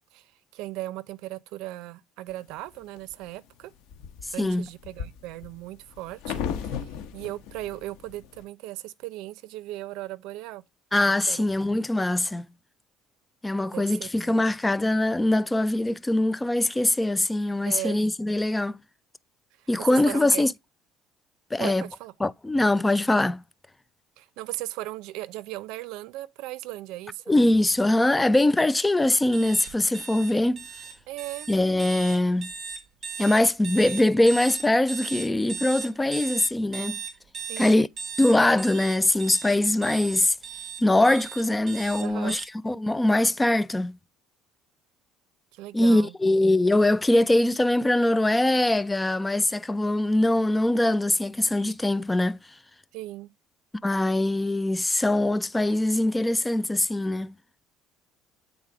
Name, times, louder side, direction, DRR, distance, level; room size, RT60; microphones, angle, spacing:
voice 1, 0.1-3.7 4.3-10.6 11.3-11.5 13.7-14.4 17.7-18.0 19.6-20.5 21.6-22.1 24.2-27.4 31.1-31.5 37.5-37.8 42.0-42.4 45.5-46.1 52.9-53.3, right 16 dB, 75° right, 0.6 m, -37 dB
sound 1, 2.4-3.1 3.6-8.4, left 7 dB, 75° left, 1.1 m, -36 dB
voice 2, 10.9-12.5 13.4-18.8 19.7-20.5 21.5-21.8 22.2-23.4 27.3-30.6 31.5-32.5 33.2-37.0 37.6-37.9 38.2-40.3 40.8-44.0 45.7-52.4 53.8-57.3, left 1 dB, 10° left, 0.3 m, -22 dB
sound 2, 29.3-42.4, right 6 dB, 35° right, 1.4 m, -37 dB
8.0 x 4.1 x 4.8 m
cardioid pair, 155°, 0 cm